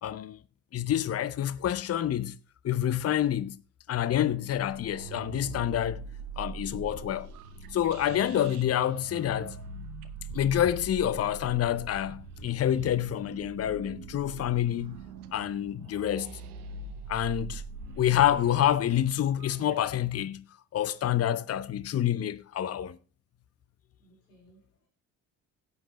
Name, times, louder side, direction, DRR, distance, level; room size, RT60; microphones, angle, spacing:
voice 1, 0.0-0.4 0.7-2.3 2.6-3.6 3.9-6.0 6.4-7.3 7.7-9.6 10.3-15.0 15.3-16.4 17.1-17.6 18.0-20.4 20.7-23.0, left 11 dB, 35° left, 0.7 m, -27 dB
sound 1, 4.5-19.9, right 4 dB, 85° right, 0.9 m, -43 dB
voice 2, 24.0-24.9, right 2 dB, 90° left, 3.0 m, -62 dB
16.5 x 8.1 x 3.0 m
figure-of-eight pair, 45°, 44 cm